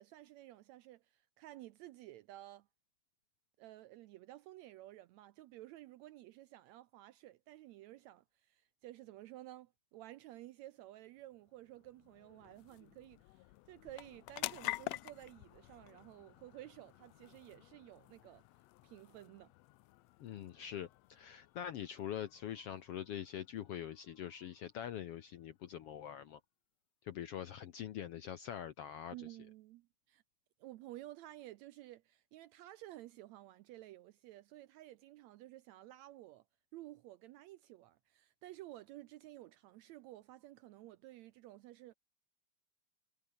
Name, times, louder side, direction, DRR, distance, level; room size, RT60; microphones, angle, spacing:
voice 1, 0.0-2.7 3.6-18.4 18.8-19.5 29.1-30.2 30.6-36.4 36.7-41.9, right 15 dB, 75° right, 1.7 m, -53 dB
sound 1, 11.0-25.8, left 19 dB, 90° left, 1.5 m, -50 dB
voice 2, 20.2-26.4 27.0-29.3, left 10 dB, 70° left, 1.5 m, -44 dB
omnidirectional pair, 3.7 m